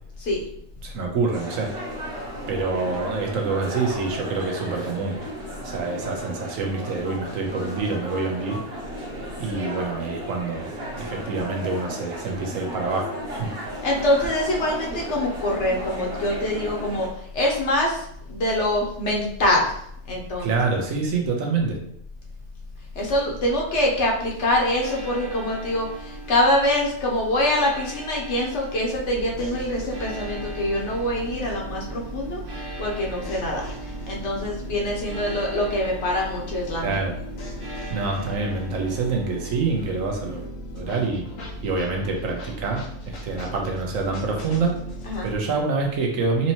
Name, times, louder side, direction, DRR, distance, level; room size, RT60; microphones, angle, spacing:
voice 1, 0.8-1.7 2.5-5.2 5.6-8.6 9.4-13.5 20.4-21.8 36.8-37.1 37.9-40.4 40.7-41.2 41.6-44.7 45.2-46.5, right 4 dB, 85° right, 1 dB, 1.2 m, -26 dB
sound 1, 1.3-17.1, right 1 dB, 50° right, 1.1 m, -35 dB
voice 2, 13.8-19.8 20.1-20.5 22.9-37.0 45.1-45.3, left 1 dB, 65° left, -1 dB, 1.2 m, -24 dB
sound 2, 24.2-40.5, right 3 dB, 25° right, 0.7 m, -41 dB
sound 3, 29.0-45.4, right 1 dB, 85° left, 1.2 m, -38 dB
4.3 x 2.8 x 2.9 m, 0.71 s
omnidirectional pair, 1.4 m